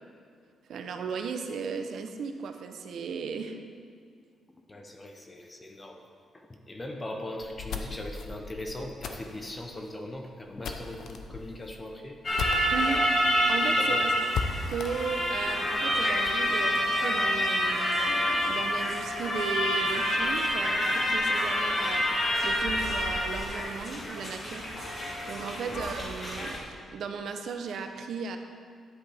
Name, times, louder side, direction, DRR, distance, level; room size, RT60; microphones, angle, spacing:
voice 1, 0.7-3.6 12.7-13.0 13.5-14.1 14.7-28.4, right 5 dB, 60° right, 6 dB, 0.7 m, -36 dB
voice 2, 4.7-6.0 6.3-12.2 12.7-12.8 13.8-14.0 25.6-25.7, left 1 dB, 15° left, 3 dB, 0.6 m, -40 dB
sound 1, 7.4-13.1 13.4-13.5 13.8-13.9 14.3-16.4, left 5 dB, 65° left, 0.6 m, -37 dB
sound 2, 12.2-26.6, equal, 35° left, 1.6 m, -28 dB
10.0 x 8.3 x 3.4 m, 2.1 s
cardioid pair, 170°, 0 cm